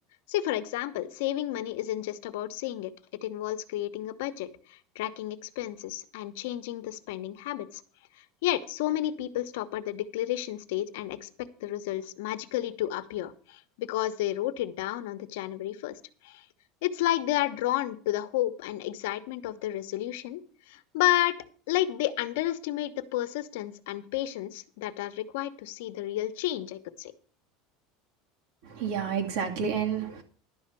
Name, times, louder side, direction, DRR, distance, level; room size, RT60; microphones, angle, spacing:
voice 1, 0.3-2.9 3.2-7.8 8.4-11.3 11.6-16.0 16.2-16.4 16.8-20.4 20.7-27.1, left 14 dB, 80° left, 12 dB, 1.0 m, -31 dB
voice 2, 28.7-30.2, right 7 dB, 70° right, 3 dB, 2.4 m, -30 dB
11.5 x 5.7 x 7.6 m, 0.43 s
supercardioid pair, 145°, 0 cm